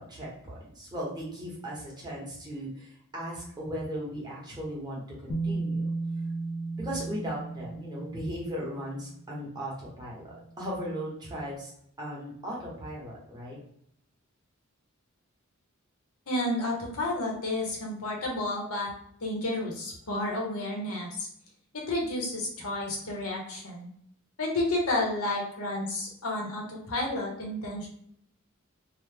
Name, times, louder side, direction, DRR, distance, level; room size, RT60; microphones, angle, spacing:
voice 1, 0.0-5.9 6.8-11.7 12.0-13.6, equal, 20° right, -5 dB, 1.0 m, -37 dB
Bass guitar, 5.3-9.2 10.4-10.5, right 3 dB, 55° left, 0.4 m, -34 dB
voice 2, 16.3-18.9 19.2-21.3 21.7-23.9 24.4-27.9, left 1 dB, 75° left, -1 dB, 0.9 m, -31 dB
2.9 x 2.1 x 3.3 m, 0.69 s
head